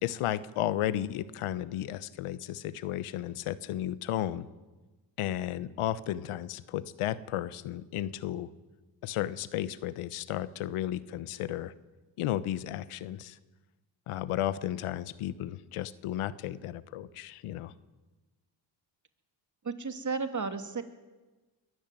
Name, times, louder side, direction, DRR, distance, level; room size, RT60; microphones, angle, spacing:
voice 1, 0.0-4.5 5.2-8.5 9.0-11.7 12.2-13.4 14.1-17.7, left 12 dB, 85° left, 16 dB, 1.1 m, -33 dB
voice 2, 19.6-20.8, right 4 dB, 35° right, 7 dB, 2.5 m, -33 dB
22.0 x 13.0 x 9.2 m, 1.2 s
supercardioid pair, 65°, 49 cm